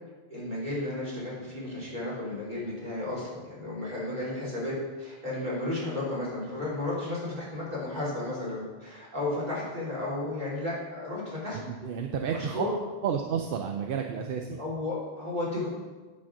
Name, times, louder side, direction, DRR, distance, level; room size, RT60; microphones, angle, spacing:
voice 1, 0.3-11.6 12.3-12.8 14.6-15.7, left 2 dB, 45° right, -8 dB, 3.5 m, -33 dB
voice 2, 11.5-12.7 13.0-14.6, right 7 dB, 60° right, 4 dB, 0.7 m, -31 dB
10.0 x 4.3 x 6.1 m, 1.3 s
omnidirectional pair, 1.1 m